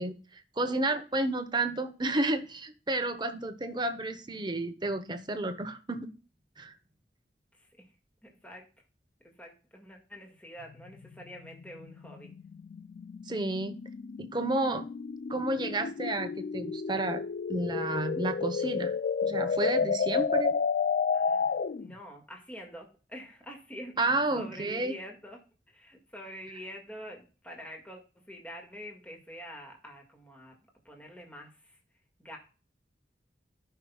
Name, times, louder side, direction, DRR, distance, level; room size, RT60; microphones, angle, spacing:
voice 1, 0.0-6.1 6.6-6.7 13.3-13.8 14.2-14.9 15.3-17.2 17.5-18.9 19.2-20.5 24.0-25.0, right 2 dB, 25° right, 8 dB, 0.9 m, -31 dB
voice 2, 8.2-8.7 9.2-12.3 21.1-25.4 25.7-28.0 28.3-30.6 30.8-31.8 32.2-32.4, equal, 10° left, 0 dB, 1.9 m, -46 dB
sound 1, 10.6-21.9, left 5 dB, 50° left, 0.3 m, -31 dB
17.0 x 5.7 x 2.3 m, 0.36 s
head